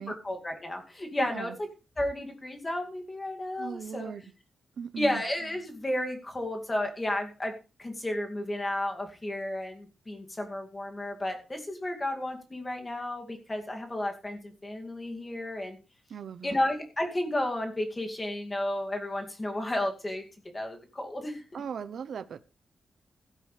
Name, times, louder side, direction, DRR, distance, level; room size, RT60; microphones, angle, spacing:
voice 1, 0.1-1.5 2.0-4.1 5.0-7.5 7.8-15.8 16.4-20.2 20.5-21.4, left 1 dB, 15° left, 3 dB, 2.4 m, -32 dB
voice 2, 1.2-1.6 3.6-4.2 4.8-5.2 16.1-16.6 21.5-22.4, right 7 dB, 60° right, 13 dB, 0.8 m, -38 dB
15.5 x 12.5 x 3.3 m, 0.31 s
wide cardioid pair, 180°, 0 cm